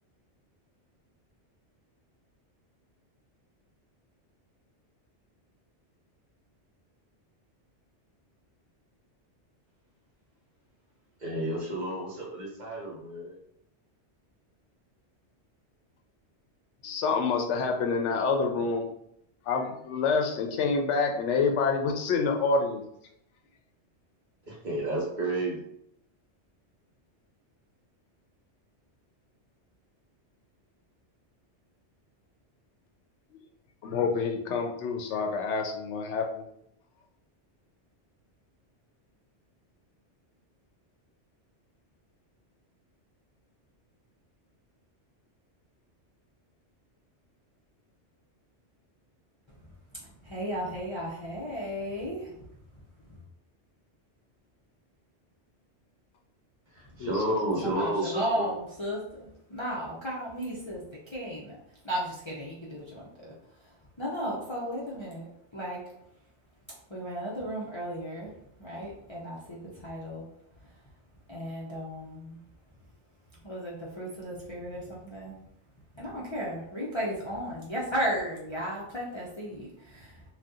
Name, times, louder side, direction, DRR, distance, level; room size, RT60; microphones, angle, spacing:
voice 1, 11.2-13.4 24.4-25.6 56.7-58.5, right 1 dB, 45° right, -4 dB, 1.0 m, -31 dB
voice 2, 16.8-18.9 19.5-22.8 33.8-36.4 57.0-57.1, left 4 dB, 80° left, 3 dB, 0.9 m, -27 dB
voice 3, 50.0-52.4 53.1-53.2 56.9-57.0 57.6-61.6 61.8-65.3 65.5-65.8 66.9-68.3 68.6-70.3 71.3-72.4 73.4-75.4 76.0-80.2, equal, 35° left, -6 dB, 0.5 m, -35 dB
2.6 x 2.3 x 3.5 m, 0.74 s
omnidirectional pair, 1.2 m